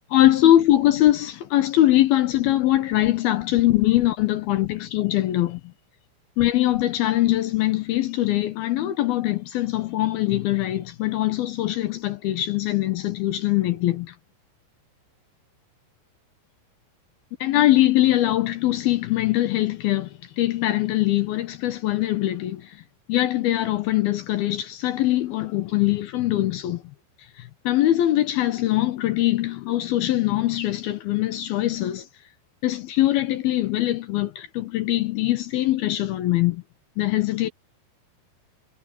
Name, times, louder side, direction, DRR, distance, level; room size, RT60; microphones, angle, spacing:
voice 1, 0.1-5.6 6.4-14.1 17.4-20.1 20.4-22.8 23.1-26.8 27.7-32.1 32.6-36.6 37.0-37.5, left 14 dB, 70° left, 2.5 m, -22 dB
omnidirectional pair, 5.3 m